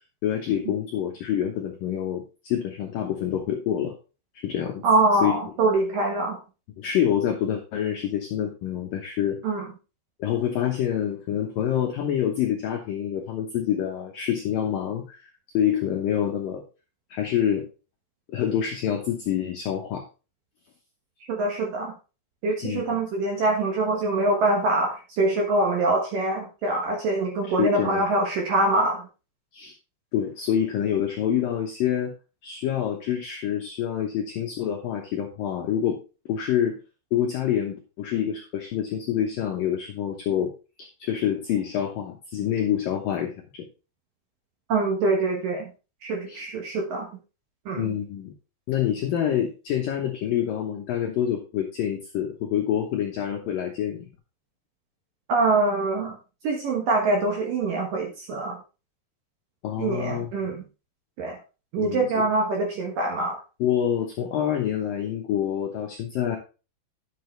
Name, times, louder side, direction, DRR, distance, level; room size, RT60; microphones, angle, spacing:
voice 1, 0.2-4.0 4.4-4.8 5.2-5.3 6.8-9.4 10.2-15.3 15.5-16.6 17.1-17.6 18.3-20.0 22.6-22.8 27.5-28.0 29.5-29.7 30.1-32.1 32.4-36.0 36.3-36.8 37.1-40.5 41.0-43.6 46.3-46.4 47.8-48.3 48.7-54.1 59.6-60.6 61.8-62.1 63.6-66.4, left 10 dB, 75° left, 1 dB, 2.0 m, -26 dB
voice 2, 4.8-6.4 9.4-9.6 21.3-21.9 22.4-29.1 44.7-45.7 46.0-47.1 47.7-47.9 55.3-56.2 56.4-58.6 59.8-60.6 61.2-61.4 61.7-63.4, right 2 dB, 65° right, 1 dB, 2.4 m, -24 dB
10.5 x 7.7 x 3.3 m, 0.32 s
omnidirectional pair, 5.6 m